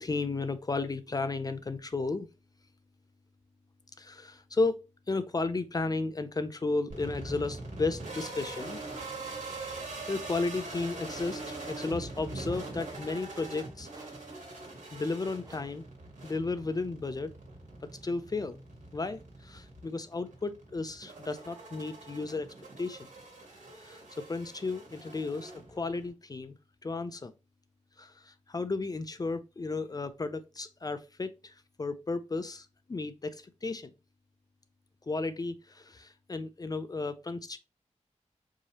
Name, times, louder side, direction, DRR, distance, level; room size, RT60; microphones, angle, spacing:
voice 1, 0.0-2.3 4.0-4.8 5.1-8.8 9.7-13.9 14.9-15.8 16.2-17.3 18.0-18.6 18.9-22.5 22.8-23.1 23.8-24.0 24.3-26.5 26.8-27.3 28.0-33.9 35.1-37.6, left 3 dB, 30° left, 0.4 m, -34 dB
sound 1, 6.9-26.1, right 2 dB, 85° right, 1.5 m, -43 dB
sound 2, 11.0-11.5 12.5-12.9 13.9-14.4 15.4-15.9, right 2 dB, 30° right, 0.9 m, -53 dB
4.6 x 2.8 x 2.8 m
wide cardioid pair, 100°, 12 cm